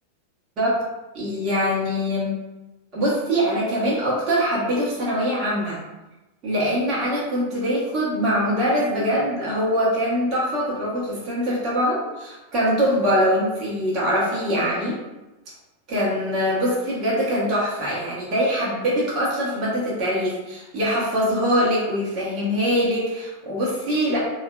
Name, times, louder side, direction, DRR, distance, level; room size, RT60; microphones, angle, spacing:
voice 1, 1.1-2.3 2.9-5.8 6.4-15.0 15.9-24.2, equal, 35° right, -7 dB, 0.9 m, -23 dB
3.6 x 2.3 x 2.3 m, 1.1 s
figure-of-eight pair, 90°, 0 cm